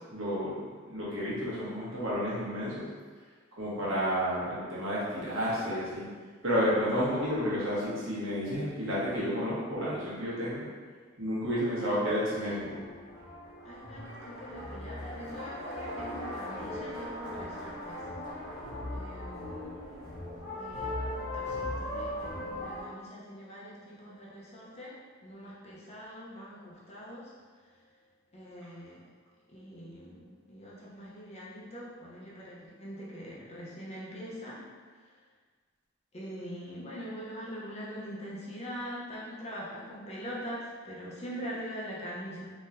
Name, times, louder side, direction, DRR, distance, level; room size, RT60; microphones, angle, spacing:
voice 1, 0.1-0.6 0.9-2.9 3.6-6.0 6.4-10.6 11.2-12.8, equal, 80° right, -8 dB, 1.3 m, -31 dB
voice 2, 3.9-4.4 11.8-12.1 12.4-12.6 13.6-19.8 20.6-28.0 28.3-29.1 29.5-34.6 34.9-35.2 36.1-42.5, equal, 30° left, -6 dB, 0.8 m, -43 dB
sound 1, 11.7-22.8, left 1 dB, 80° left, 1.2 m, -39 dB
3.8 x 3.0 x 2.6 m, 1.5 s
head